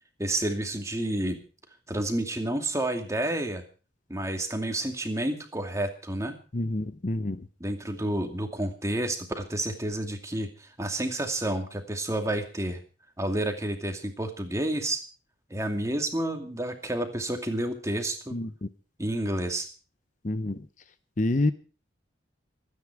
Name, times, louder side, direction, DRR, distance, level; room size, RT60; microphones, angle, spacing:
voice 1, 0.2-1.4 1.9-3.6 4.1-6.3 7.6-12.8 13.2-15.0 15.5-18.3 19.0-19.7, right 1 dB, 15° right, 5 dB, 2.4 m, -30 dB
voice 2, 6.5-7.4 18.3-18.7 20.2-20.6 21.2-21.5, left 2 dB, 40° left, 12 dB, 0.7 m, -27 dB
25.0 x 9.7 x 4.7 m, 0.36 s
head